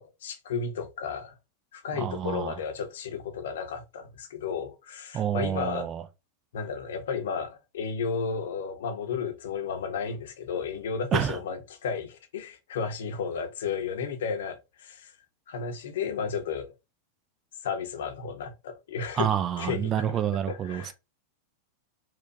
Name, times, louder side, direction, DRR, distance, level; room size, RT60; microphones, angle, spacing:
voice 1, 0.0-1.4 1.7-5.9 6.5-15.1 15.5-16.7 17.6-19.3 19.6-20.1 20.5-20.9, left 6 dB, 60° left, 0.8 m, -33 dB
voice 2, 2.0-2.6 5.1-6.0 11.1-11.4 19.2-20.9, right 9 dB, 30° right, 0.5 m, -28 dB
4.4 x 2.4 x 2.6 m
figure-of-eight pair, 90°, 0 cm